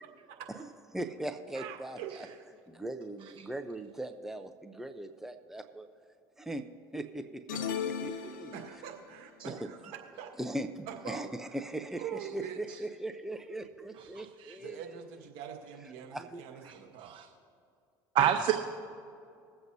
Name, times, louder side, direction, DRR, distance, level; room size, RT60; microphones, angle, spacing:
voice 1, 0.9-2.3 2.7-5.9 6.4-6.6 6.9-7.4 8.0-8.5 9.4-9.6 10.4-15.0 16.1-16.7, right 1 dB, 5° right, 8 dB, 0.7 m, -39 dB
voice 2, 1.5-2.4 7.5-10.3 10.9-11.3 12.0-12.6 14.6-17.1 18.5-18.6, right 9 dB, 65° right, 2 dB, 1.7 m, -44 dB
sound 1, 7.5-9.0, left 7 dB, 85° left, 0.8 m, -36 dB
voice 3, 14.1-14.6 16.7-17.3 18.1-18.5, right 10 dB, 50° right, 5 dB, 0.8 m, -29 dB
21.5 x 7.9 x 2.8 m, 2.3 s
hypercardioid pair, 80°, 11 cm